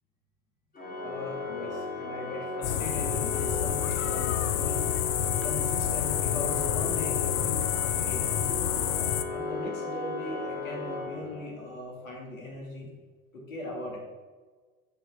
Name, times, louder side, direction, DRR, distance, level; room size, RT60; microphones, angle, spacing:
Organ, 0.7-11.7, left 2 dB, 20° left, 1.7 m, -36 dB
voice 1, 1.0-4.9 5.4-8.9 9.3-12.9 13.3-14.0, left 1 dB, 70° left, -1 dB, 2.4 m, -39 dB
sound 1, 2.6-9.2, left 11 dB, 50° left, 0.6 m, -28 dB
7.8 x 5.1 x 4.9 m, 1.4 s
figure-of-eight pair, 80°, 42 cm